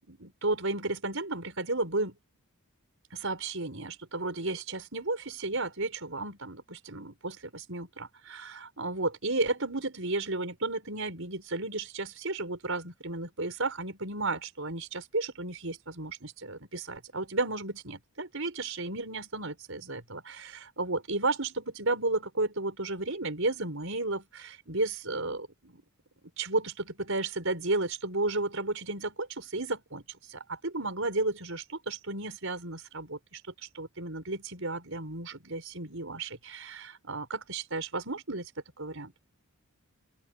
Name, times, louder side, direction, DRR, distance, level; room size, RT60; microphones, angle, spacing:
voice 1, 0.1-2.2 3.1-25.8 26.4-30.0 30.3-33.4 33.7-38.5 38.8-39.1, right 2 dB, 65° right, 6.2 m, -33 dB
open air
head